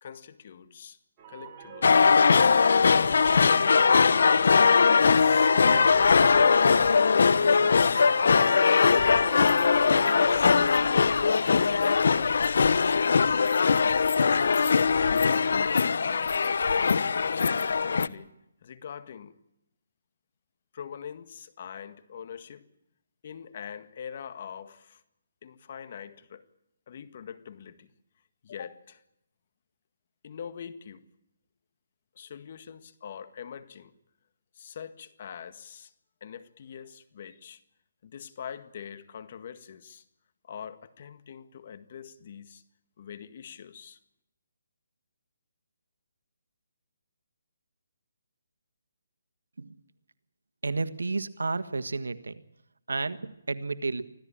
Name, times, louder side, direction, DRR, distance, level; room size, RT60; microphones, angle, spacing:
voice 1, 0.0-1.0 1.3-2.0 4.1-5.5 5.8-10.6 11.4-13.5 14.2-17.1 17.6-18.3 18.6-19.4 20.7-22.7 23.2-25.0 25.4-26.5 26.9-27.9 28.4-29.0 30.2-31.0 32.2-33.9 34.6-35.9 36.2-37.6 38.0-40.0 40.4-42.6 43.0-44.0, left 8 dB, 45° left, 1.7 m, -43 dB
sound 1, 1.2-10.4, right 5 dB, 25° right, 4.6 m, -42 dB
sound 2, 1.8-18.1, left 5 dB, 65° left, 0.9 m, -21 dB
voice 2, 50.6-52.3 52.9-54.0, right 3 dB, 80° right, 1.5 m, -31 dB
25.0 x 15.5 x 8.8 m
hypercardioid pair, 155°, 0 cm